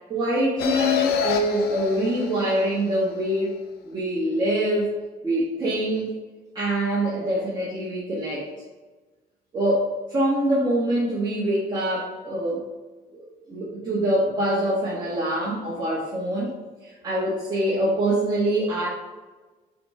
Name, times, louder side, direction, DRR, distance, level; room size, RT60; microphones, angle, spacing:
voice 1, 0.1-3.6 3.8-4.9 5.2-6.1 6.5-8.5 9.5-12.6 13.1-16.5 16.8-18.9, right 1 dB, 25° right, -9 dB, 1.9 m, -24 dB
sound 1, 0.6-3.1, left 7 dB, 65° left, 0.9 m, -27 dB
8.5 x 4.4 x 3.8 m, 1.3 s
cardioid pair, 165°, 17 cm